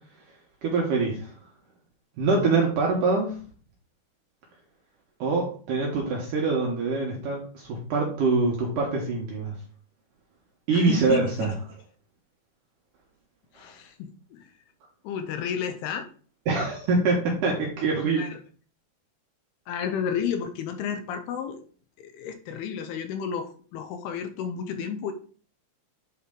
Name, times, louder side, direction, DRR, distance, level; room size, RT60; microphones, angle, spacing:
voice 1, 0.6-1.3 2.2-3.4 5.2-9.5 10.7-11.5 16.5-18.2, right 3 dB, 75° right, -1 dB, 1.9 m, -24 dB
voice 2, 10.7-11.5 13.5-14.5 15.0-16.1 18.2-18.4 19.7-21.6 22.0-25.1, left 7 dB, 80° left, 7 dB, 2.3 m, -32 dB
8.5 x 4.2 x 3.7 m, 0.43 s
omnidirectional pair, 5.2 m